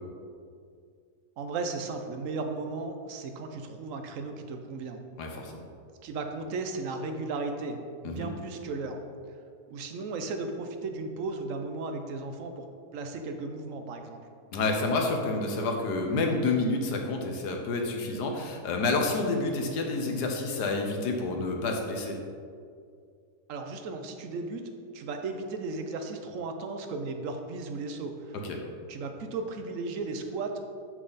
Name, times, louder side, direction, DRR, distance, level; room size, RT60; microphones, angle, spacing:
voice 1, 1.4-5.0 6.0-9.0 9.7-12.6 12.9-14.2 23.5-24.6 24.9-28.4 28.9-30.6, right 3 dB, 60° right, 5 dB, 1.0 m, -35 dB
voice 2, 5.2-5.5 8.0-8.3 14.5-22.2 28.4-28.6, left 3 dB, 75° left, 2 dB, 1.5 m, -29 dB
7.5 x 5.9 x 4.0 m, 2.2 s
omnidirectional pair, 1.8 m